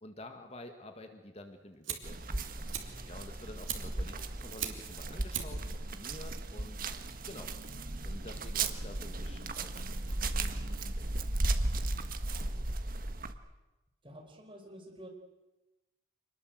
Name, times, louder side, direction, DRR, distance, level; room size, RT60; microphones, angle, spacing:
voice 1, 0.0-6.8 7.3-7.5 8.1-10.6 11.1-11.7, left 1 dB, 30° left, 6 dB, 1.8 m, -50 dB
Fire, 1.4-11.9, right 9 dB, 80° right, 3.0 m, -45 dB
sound 1, 2.0-13.3, right 2 dB, 45° right, 1.5 m, -36 dB
voice 2, 2.6-3.1 4.0-4.2 10.5-11.0 12.3-12.7 14.0-15.1, equal, 25° right, 3 dB, 4.5 m, -53 dB
25.5 x 21.0 x 7.9 m, 1.1 s
head